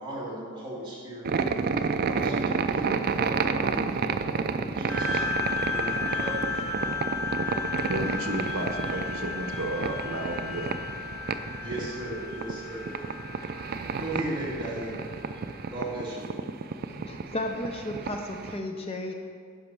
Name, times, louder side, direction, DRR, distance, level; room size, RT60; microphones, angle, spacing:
voice 1, 0.0-1.3 1.7-6.9 11.6-12.9 14.0-15.0 15.7-16.3, right 1 dB, 25° right, -7 dB, 2.4 m, -37 dB
sound 1, 1.2-18.6, right 5 dB, 45° right, 0.3 m, -31 dB
sound 2, 4.9-15.8, left 4 dB, 5° left, 1.3 m, -34 dB
voice 2, 7.9-10.7, right 1 dB, 80° right, 5 dB, 0.7 m, -33 dB
voice 3, 16.8-19.1, left 1 dB, 30° left, 3 dB, 0.5 m, -34 dB
10.5 x 5.4 x 4.7 m, 2.2 s
head